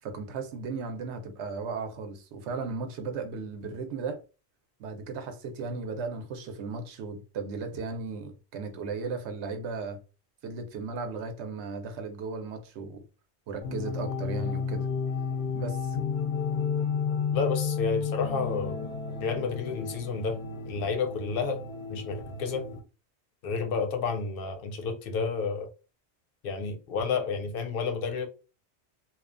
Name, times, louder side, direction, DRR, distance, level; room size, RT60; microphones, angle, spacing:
voice 1, 0.0-4.2 4.8-10.0 10.4-13.0 13.5-14.9 15.5-16.0, right 4 dB, 80° right, 0.9 m, -36 dB
sound 1, 13.6-22.8, left 6 dB, 90° left, 0.9 m, -32 dB
voice 2, 17.3-18.8 19.2-20.4 20.7-21.6 21.9-22.7 23.4-25.7 26.4-28.3, left 5 dB, 65° left, 0.7 m, -30 dB
2.7 x 2.2 x 2.4 m
omnidirectional pair, 1.1 m